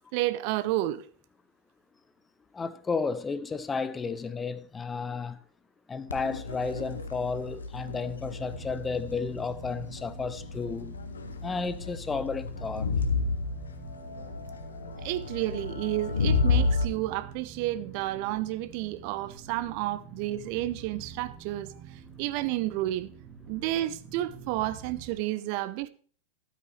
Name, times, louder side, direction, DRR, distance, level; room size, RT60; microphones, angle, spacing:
voice 1, 0.1-1.0 15.0-23.1 23.5-25.9, right 15 dB, 45° right, 0.5 m, -31 dB
voice 2, 2.5-5.4 5.9-11.0 11.4-12.9, left 4 dB, 15° left, 0.5 m, -32 dB
Crowd, 6.1-16.8, left 4 dB, 70° left, 1.0 m, -31 dB
sound 1, 8.2-25.2, right 6 dB, 30° right, 1.7 m, -48 dB
12.5 x 8.4 x 3.2 m
figure-of-eight pair, 90°, 0 cm